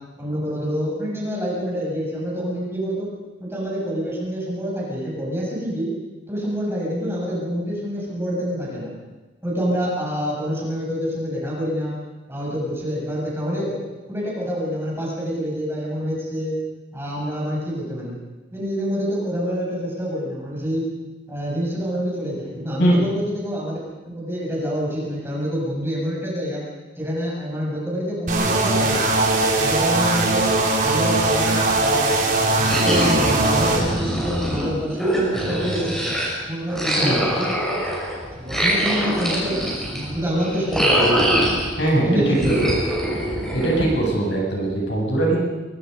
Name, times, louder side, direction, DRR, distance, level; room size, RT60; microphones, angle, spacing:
voice 1, 0.2-3.2 3.4-5.9 6.3-8.9 9.4-12.0 12.3-13.8 14.1-16.5 16.9-18.2 18.5-20.9 21.3-23.8 24.1-26.6 27.0-29.0 29.6-32.2 32.5-36.1 36.5-37.6 38.3-41.1 42.1-42.7, equal, 15° right, -4 dB, 7.4 m, -27 dB
voice 2, 22.8-23.1 37.0-37.2 41.8-42.5 43.5-45.4, right 1 dB, 65° left, -2 dB, 7.7 m, -20 dB
sound 1, 28.3-33.8, right 2 dB, 45° right, 4.5 m, -20 dB
sound 2, 32.7-36.3 36.7-41.9 42.4-44.1, equal, ahead, 6.4 m, -23 dB
24.0 x 24.0 x 5.5 m, 1.2 s
head